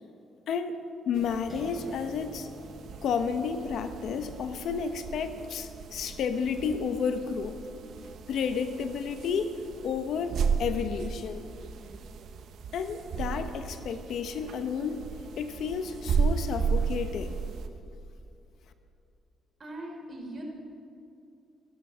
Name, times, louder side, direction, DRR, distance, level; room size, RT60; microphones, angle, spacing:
voice 1, 1.1-2.5 3.0-7.6 8.3-9.5 9.8-11.5 12.7-15.0 15.4-17.4, left 6 dB, 70° left, 9 dB, 1.0 m, -31 dB
sound 1, 1.1-17.7, right 6 dB, 70° right, 1.0 m, -35 dB
sound 2, 1.5-8.4, equal, 10° left, 4.1 m, -51 dB
voice 2, 19.6-20.4, right 1 dB, 35° right, -1 dB, 4.2 m, -40 dB
15.0 x 11.5 x 6.2 m, 2.6 s
cardioid pair, 90°, 0 cm